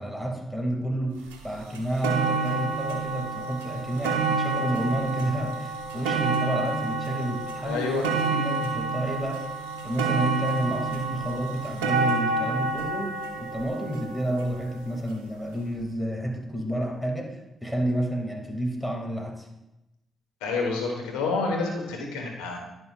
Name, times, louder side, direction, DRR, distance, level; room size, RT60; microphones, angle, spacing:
voice 1, 0.0-9.4 9.8-19.5, right 1 dB, 5° right, 1 dB, 2.1 m, -30 dB
sound 1, 1.3-1.4 1.7-14.9 15.7-15.8, right 3 dB, 90° right, 0.6 m, -29 dB
voice 2, 7.6-8.0 20.4-22.6, left 3 dB, 85° left, 1 dB, 1.1 m, -28 dB
10.5 x 5.8 x 2.4 m, 0.93 s
hypercardioid pair, 45°, 0 cm